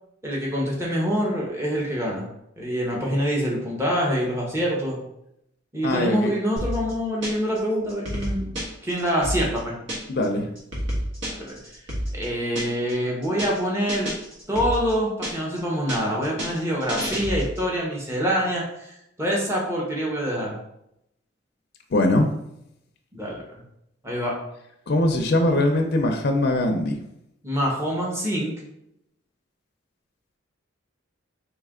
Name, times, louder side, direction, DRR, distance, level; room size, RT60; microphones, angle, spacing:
voice 1, 0.2-2.3 2.6-5.0 5.7-8.6 8.8-9.8 11.3-11.6 12.1-14.1 14.5-18.6 19.2-20.6 23.1-23.4 24.0-24.4 27.4-28.5, equal, 15° right, -3 dB, 0.9 m, -25 dB
voice 2, 5.8-6.3 10.1-10.5 21.9-22.3 24.9-27.0, left 1 dB, 55° left, 4 dB, 0.4 m, -21 dB
sound 1, 6.6-7.6 7.9-10.3 10.6-12.9 13.2-13.6 13.9-15.6 15.9-17.7, equal, 70° right, 1.3 m, -30 dB
3.2 x 2.9 x 3.7 m, 0.79 s
head